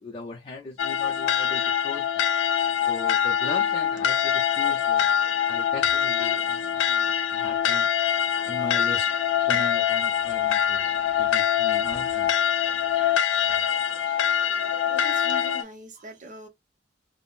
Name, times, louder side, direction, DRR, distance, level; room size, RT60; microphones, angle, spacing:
voice 1, 0.0-2.2 2.9-5.1 5.5-7.9 8.5-9.1 9.4-10.9 11.2-12.3, left 2 dB, 30° left, 0.5 m, -38 dB
sound 1, 0.8-15.6, left 9 dB, 90° left, 0.4 m, -24 dB
voice 2, 14.9-16.5, equal, 45° right, 0.7 m, -42 dB
3.4 x 2.0 x 2.4 m
head